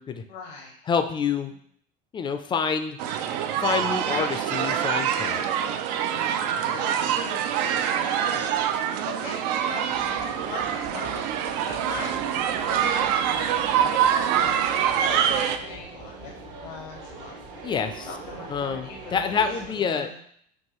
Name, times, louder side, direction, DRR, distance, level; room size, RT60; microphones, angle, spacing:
voice 1, 0.3-0.8 6.6-8.7 9.1-11.2 11.6-12.1 12.7-16.3 16.6-17.4 18.1-20.2, left 4 dB, 85° left, -1 dB, 0.9 m, -41 dB
voice 2, 0.9-1.5 2.1-3.0 3.6-5.5 17.6-18.1 18.5-20.1, left 6 dB, 25° left, 9 dB, 0.4 m, -27 dB
sound 1, 3.0-15.6, right 9 dB, 80° right, 0.4 m, -25 dB
sound 2, 9.9-19.8, right 3 dB, 65° right, 1.0 m, -42 dB
4.5 x 2.7 x 3.0 m, 0.64 s
supercardioid pair, 115°, 21 cm